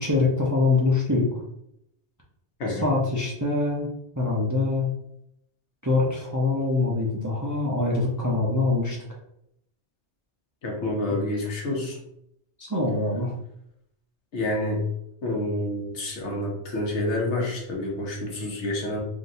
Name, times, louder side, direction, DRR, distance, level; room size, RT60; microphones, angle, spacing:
voice 1, 0.0-1.4 2.7-3.9 4.2-4.9 5.8-9.0 11.1-11.2 12.6-13.3, left 3 dB, 25° right, -3 dB, 0.4 m, -24 dB
voice 2, 10.6-12.0 14.3-14.8 15.2-19.0, left 1 dB, 85° left, -1 dB, 1.2 m, -28 dB
3.6 x 2.5 x 2.6 m, 0.77 s
omnidirectional pair, 1.1 m